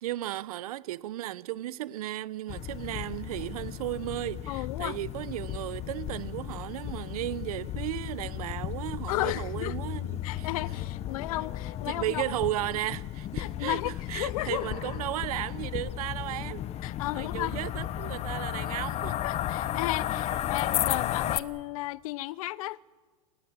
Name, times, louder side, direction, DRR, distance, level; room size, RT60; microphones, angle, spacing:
voice 1, 0.0-10.5 11.9-16.7 17.1-19.2, right 15 dB, 70° right, 1.1 m, -35 dB
sound 1, 2.5-21.4, left 12 dB, 35° left, 1.1 m, -34 dB
voice 2, 4.5-5.0 9.1-9.7 10.2-12.2 13.4-14.6 16.8-17.5 19.2-22.8, left 17 dB, 65° left, 0.8 m, -33 dB
29.0 x 18.5 x 8.2 m
hypercardioid pair, 115°, 19 cm